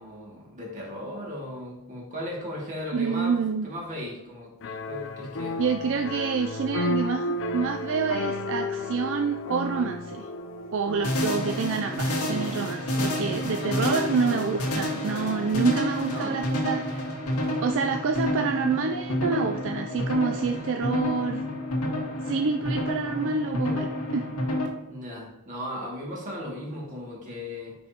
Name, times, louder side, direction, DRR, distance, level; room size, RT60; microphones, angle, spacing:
voice 1, 0.0-4.5 4.8-5.6 13.6-13.8 16.1-16.4 24.9-27.8, left 1 dB, 35° right, -3 dB, 2.4 m, -36 dB
voice 2, 2.9-3.7 4.6-4.8 5.6-10.3 10.7-17.0 17.6-21.4 22.2-24.2, right 5 dB, 60° right, 6 dB, 0.4 m, -27 dB
sound 1, 4.6-15.9, left 2 dB, 60° left, 0.5 m, -34 dB
sound 2, 11.0-24.7, left 1 dB, 85° left, 1.7 m, -29 dB
10.0 x 5.3 x 2.9 m, 0.92 s
head